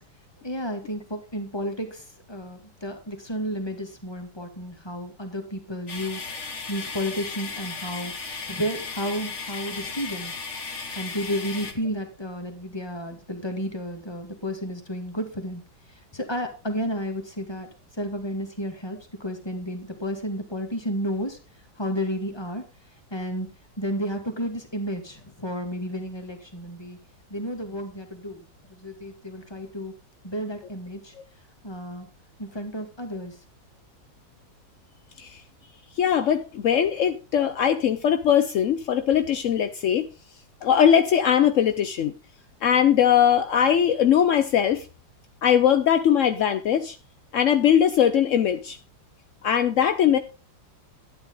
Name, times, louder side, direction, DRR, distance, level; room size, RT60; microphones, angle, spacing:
voice 1, 0.4-10.3 11.0-15.6 15.9-17.7 18.0-21.4 21.8-22.6 23.1-27.0 27.3-28.4 28.7-29.9 30.2-31.2 31.6-32.1 32.4-33.4, equal, 15° left, 2.0 m, -32 dB
sound 1, 5.9-11.7, left 4 dB, 40° left, 1.7 m, -35 dB
voice 2, 36.0-40.1 40.6-42.1 42.6-44.9 45.4-47.0 47.3-48.8 49.4-50.2, left 9 dB, 65° left, 0.7 m, -20 dB
12.0 x 9.6 x 3.9 m
omnidirectional pair, 2.1 m